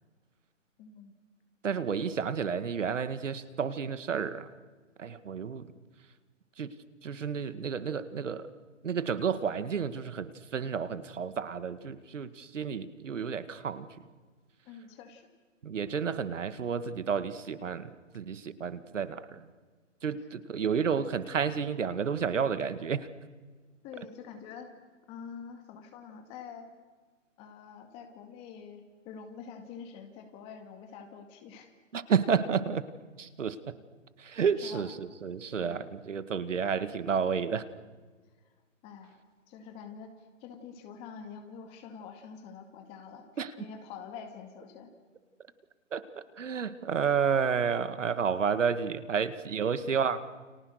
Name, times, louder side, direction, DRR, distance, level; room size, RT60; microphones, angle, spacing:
voice 1, 0.8-1.1 14.6-15.3 23.8-24.7 25.1-26.7 27.4-31.7 34.6-34.9 35.6-35.8 38.8-39.2 39.5-43.2 43.6-44.9, left 6 dB, 15° left, 5 dB, 2.1 m, -46 dB
voice 2, 1.6-4.5 5.0-5.7 6.6-6.7 7.0-8.5 8.8-14.1 15.6-19.5 20.0-23.1 31.9-32.8 33.2-33.8 34.2-37.7 43.4-43.5 45.9-50.2, right 6 dB, 70° right, 13 dB, 2.0 m, -31 dB
30.0 x 29.0 x 6.6 m, 1.4 s
hypercardioid pair, 165°, 39 cm